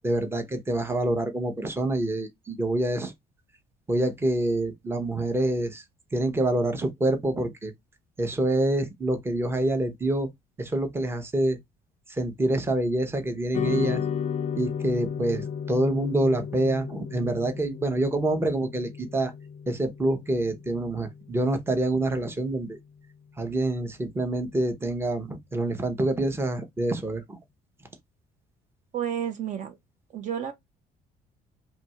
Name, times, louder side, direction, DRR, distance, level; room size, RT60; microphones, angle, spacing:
voice 1, 0.0-3.1 3.9-5.8 6.1-7.7 8.2-10.3 10.6-11.6 12.2-14.0 14.6-19.3 19.7-22.8 23.4-27.2, right 1 dB, 15° right, 0.8 m, -26 dB
sound 1, 13.5-22.1, left 7 dB, 45° left, 0.4 m, -34 dB
voice 2, 28.9-29.8 30.1-30.5, right 9 dB, 45° right, 0.7 m, -30 dB
2.7 x 2.5 x 4.3 m
cardioid pair, 110°, 17 cm